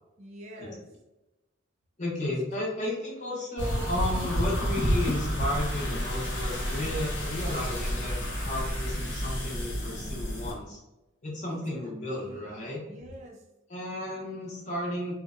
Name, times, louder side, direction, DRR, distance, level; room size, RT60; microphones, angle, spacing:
voice 1, 0.2-0.9 11.5-13.5, equal, 35° right, 0 dB, 0.4 m, -47 dB
voice 2, 2.0-10.8 11.2-12.8 13.7-15.1, left 1 dB, 35° left, -3 dB, 0.6 m, -33 dB
sound 1, 3.6-10.5, equal, 60° left, 0.8 m, -30 dB
2.7 x 2.0 x 2.4 m, 1.0 s
head